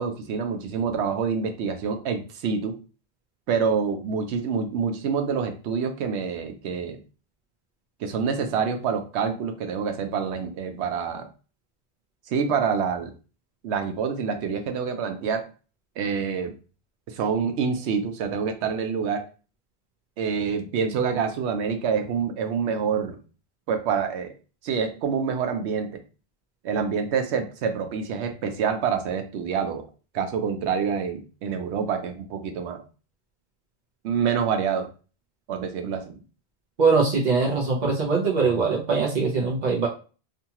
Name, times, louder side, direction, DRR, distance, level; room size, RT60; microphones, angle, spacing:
voice 1, 0.0-2.8 3.5-7.0 8.0-11.3 12.3-13.1 13.6-15.5 16.0-16.5 17.1-19.2 20.2-23.2 23.7-24.3 24.6-26.0 26.6-29.8 30.1-32.8 34.0-34.9 35.5-36.2, right 6 dB, 90° right, 6 dB, 0.9 m, -27 dB
voice 2, 36.8-39.9, right 4 dB, 50° right, -2 dB, 0.7 m, -22 dB
2.7 x 2.3 x 2.8 m, 0.35 s
omnidirectional pair, 1.1 m